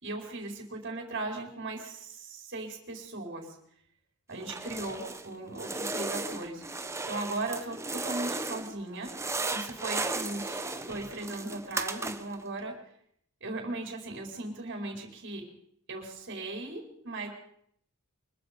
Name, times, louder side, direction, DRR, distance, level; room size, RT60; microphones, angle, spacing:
voice 1, 0.0-3.5 4.3-9.1 9.5-12.7 13.4-15.5 15.9-17.3, right 2 dB, 50° right, 1 dB, 4.8 m, -38 dB
sound 1, 4.4-5.3 5.6-8.7 9.0-12.4, right 3 dB, 15° right, 1.2 m, -35 dB
24.5 x 22.0 x 5.3 m, 0.70 s
head